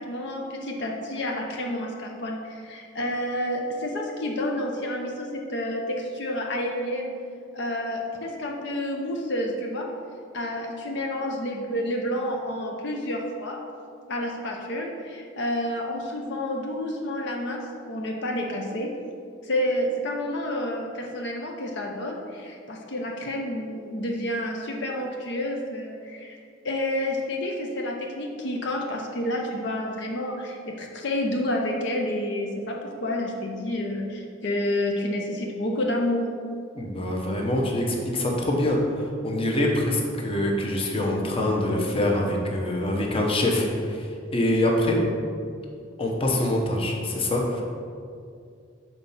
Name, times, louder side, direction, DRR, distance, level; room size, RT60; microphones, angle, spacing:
voice 1, 0.0-7.1 7.5-9.9 10.3-13.6 14.1-18.9 19.4-26.4 26.6-36.3, left 1 dB, 65° left, 0 dB, 0.7 m, -29 dB
voice 2, 36.7-45.0 46.0-47.6, left 1 dB, 30° left, 0 dB, 0.9 m, -25 dB
6.2 x 4.1 x 5.5 m, 2.3 s
head